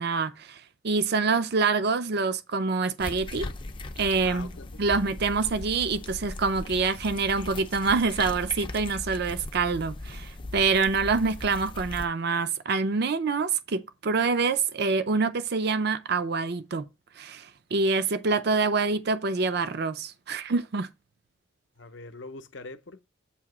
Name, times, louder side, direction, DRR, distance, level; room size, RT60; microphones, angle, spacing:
voice 1, 0.0-3.5 4.0-4.5 4.8-16.8 17.2-20.9, right 4 dB, 50° right, 0.5 m, -26 dB
sound 1, 3.0-12.1, left 2 dB, 25° left, 0.5 m, -38 dB
voice 2, 4.2-4.8 21.8-23.0, left 3 dB, 60° left, 0.7 m, -43 dB
8.4 x 2.8 x 5.9 m
head